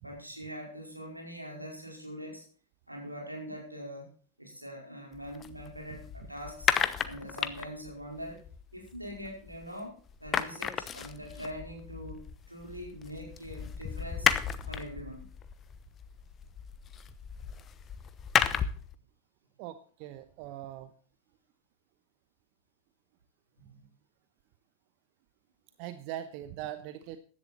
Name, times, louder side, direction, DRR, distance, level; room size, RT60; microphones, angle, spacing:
voice 1, 0.0-2.5 2.9-4.1 4.4-6.7 7.0-8.4 8.7-14.3 14.7-15.3 23.6-23.9, equal, 85° right, 0 dB, 4.7 m, -43 dB
sound 1, 5.1-9.8 10.1-18.9, left 8 dB, 25° left, 1.0 m, -34 dB
voice 2, 19.6-20.9 25.8-27.2, right 12 dB, 45° right, 11 dB, 1.0 m, -41 dB
15.5 x 11.0 x 4.3 m, 0.41 s
figure-of-eight pair, 90°, 0 cm